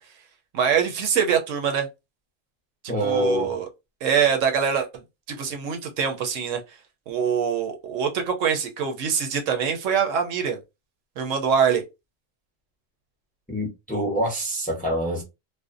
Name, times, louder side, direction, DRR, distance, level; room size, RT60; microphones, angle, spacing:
voice 1, 0.5-1.9 3.0-3.7 4.0-5.0 5.3-6.6 7.1-10.6 11.2-11.8, right 7 dB, 75° right, 0.9 m, -24 dB
voice 2, 2.9-3.6 13.5-15.2, right 1 dB, 10° left, 0.5 m, -25 dB
2.5 x 2.2 x 2.4 m
omnidirectional pair, 1.4 m